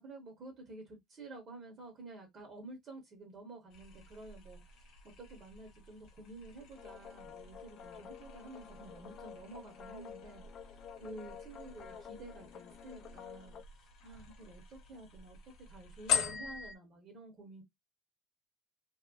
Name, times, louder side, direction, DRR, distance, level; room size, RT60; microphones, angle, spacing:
voice 1, 0.0-17.6, right 2 dB, 30° right, 1.0 m, -51 dB
sound 1, 3.7-16.7, left 8 dB, 55° left, 0.8 m, -43 dB
sound 2, 6.7-13.6, left 8 dB, 35° left, 0.4 m, -51 dB
2.9 x 2.9 x 2.3 m
cardioid pair, 180°, 0 cm